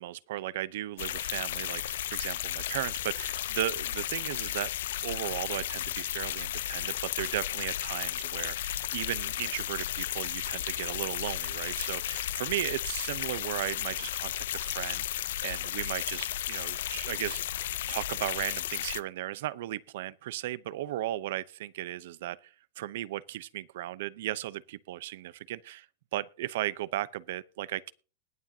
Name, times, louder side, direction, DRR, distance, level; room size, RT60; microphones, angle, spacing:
voice 1, 0.0-4.7 5.0-17.4 17.9-25.9 26.1-27.9, right 14 dB, 70° right, 0.7 m, -36 dB
sound 1, 1.0-19.0, left 12 dB, 80° left, 0.5 m, -34 dB
20.5 x 7.4 x 2.8 m
supercardioid pair, 150°, 0 cm